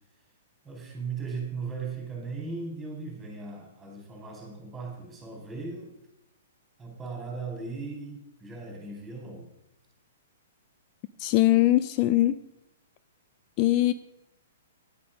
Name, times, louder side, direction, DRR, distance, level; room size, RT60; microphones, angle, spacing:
voice 1, 0.6-5.9 6.8-9.5, right 4 dB, 15° right, 1 dB, 4.0 m, -37 dB
voice 2, 11.2-12.4 13.6-13.9, left 15 dB, 40° left, 14 dB, 0.4 m, -21 dB
10.5 x 8.5 x 5.1 m, 0.91 s
figure-of-eight pair, 115°, 0 cm